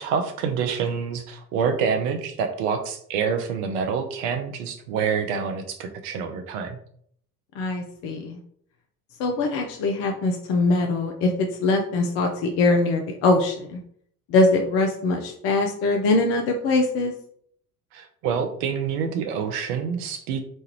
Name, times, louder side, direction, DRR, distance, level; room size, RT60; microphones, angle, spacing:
voice 1, 0.0-6.8 17.9-20.4, right 6 dB, 50° right, 6 dB, 0.5 m, -27 dB
voice 2, 7.6-8.4 9.2-11.3 11.6-13.8 14.3-17.1, left 2 dB, 30° left, 3 dB, 0.4 m, -22 dB
3.0 x 2.3 x 3.0 m, 0.64 s
figure-of-eight pair, 60°, 46 cm